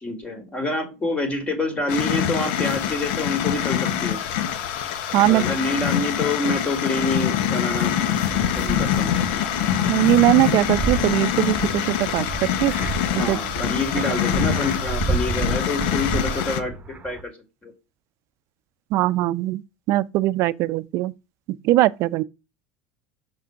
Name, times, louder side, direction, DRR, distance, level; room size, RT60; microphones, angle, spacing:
voice 1, 0.0-4.2 5.3-7.9 8.5-9.1 13.2-16.7 17.0-17.3 17.6-17.7, left 2 dB, 25° left, 2.4 m, -27 dB
sound 1, 1.9-16.6, left 10 dB, 75° left, 0.9 m, -25 dB
voice 2, 5.1-5.4 9.9-12.7 13.2-13.4 14.1-14.2 18.9-19.6 19.9-21.1 21.6-22.2, right 16 dB, 60° right, 0.5 m, -20 dB
sound 2, 7.7-17.2, right 3 dB, 25° right, 1.0 m, -31 dB
6.1 x 3.7 x 5.6 m
supercardioid pair, 100°, 6 cm